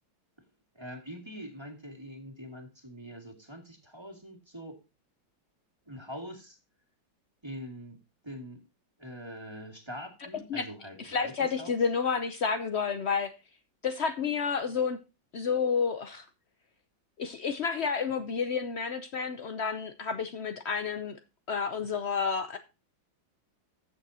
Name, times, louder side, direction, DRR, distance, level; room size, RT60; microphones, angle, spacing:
voice 1, 0.8-4.8 5.9-6.6 7.4-8.0 8.2-8.6 9.0-11.8, equal, 15° right, 3 dB, 2.0 m, -43 dB
voice 2, 11.0-13.3 13.8-15.0 15.3-16.2 17.2-21.2 21.5-22.6, left 5 dB, 85° left, 9 dB, 0.5 m, -30 dB
15.0 x 6.7 x 2.8 m, 0.28 s
omnidirectional pair, 2.1 m